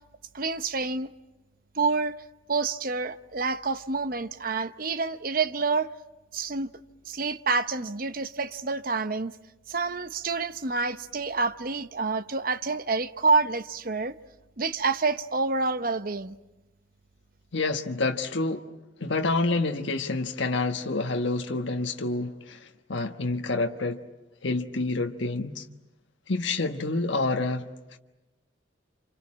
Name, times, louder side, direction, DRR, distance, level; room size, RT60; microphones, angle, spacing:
voice 1, 0.3-1.1 1.8-2.2 2.5-5.9 6.3-6.7 7.1-9.3 9.7-14.2 14.6-16.4, right 4 dB, 50° right, 0.9 m, -28 dB
voice 2, 17.5-18.7 19.0-22.6 22.9-24.0 24.4-25.6 26.3-27.6, left 3 dB, 80° left, 1.3 m, -28 dB
29.0 x 27.5 x 7.4 m
head